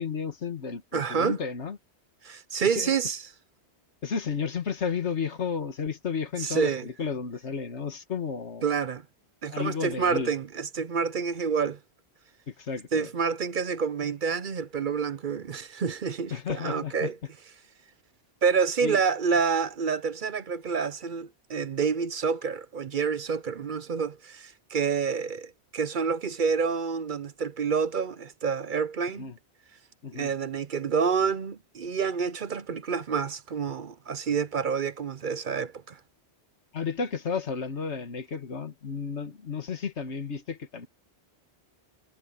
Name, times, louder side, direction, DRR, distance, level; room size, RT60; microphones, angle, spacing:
voice 1, 0.0-1.8 2.8-2.9 4.0-8.6 9.5-10.3 12.5-13.1 16.3-17.1 18.8-19.0 29.2-29.4 30.0-30.3 36.7-40.9, left 6 dB, 80° left, 1.9 m, -32 dB
voice 2, 0.9-1.4 2.2-3.2 6.4-6.8 8.6-9.0 9.4-11.8 12.9-17.2 18.4-29.3 30.1-36.0, right 6 dB, 50° right, 0.8 m, -28 dB
omnidirectional pair, 1.1 m